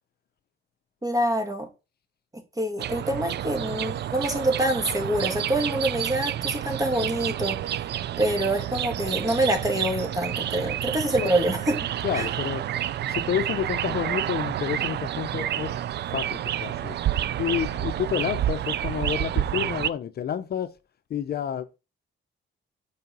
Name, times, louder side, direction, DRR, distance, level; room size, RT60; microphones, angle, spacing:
voice 1, 1.0-1.7 2.3-7.8 8.2-11.9 12.2-12.3, right 1 dB, 15° right, 2.3 m, -26 dB
sound 1, 2.8-19.9, right 11 dB, 60° right, 0.5 m, -29 dB
voice 2, 12.0-12.6 13.1-15.7 16.1-17.0 17.4-20.7 21.1-21.8, left 9 dB, 50° left, 0.6 m, -29 dB
5.5 x 4.9 x 5.4 m
cardioid pair, 90°, 20 cm